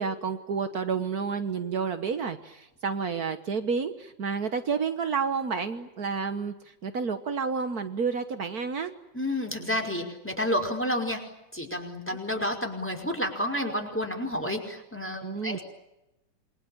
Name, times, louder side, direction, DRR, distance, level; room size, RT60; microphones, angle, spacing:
voice 1, 0.0-8.9 15.2-15.6, right 5 dB, 80° right, 9 dB, 0.8 m, -30 dB
voice 2, 9.1-11.2 11.5-15.6, left 1 dB, 5° left, 4 dB, 4.7 m, -30 dB
28.5 x 23.0 x 8.8 m, 0.93 s
omnidirectional pair, 3.8 m